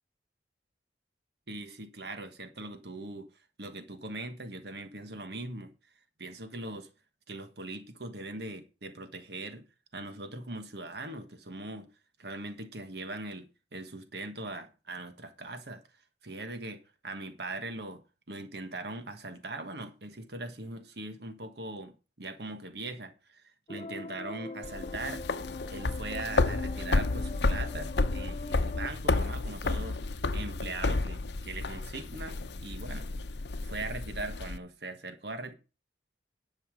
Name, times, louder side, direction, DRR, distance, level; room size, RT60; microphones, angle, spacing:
voice 1, 1.5-3.3 3.6-5.7 6.2-6.9 7.3-9.6 9.9-11.9 12.2-15.8 16.2-18.0 18.3-25.2 25.7-30.0 30.3-33.1 33.6-35.5, right 2 dB, 65° right, 1.4 m, -40 dB
sound 1, 23.7-28.9, left 3 dB, 35° left, 0.4 m, -42 dB
sound 2, 24.6-34.6, left 3 dB, 70° left, 0.7 m, -31 dB
11.0 x 5.7 x 6.3 m
head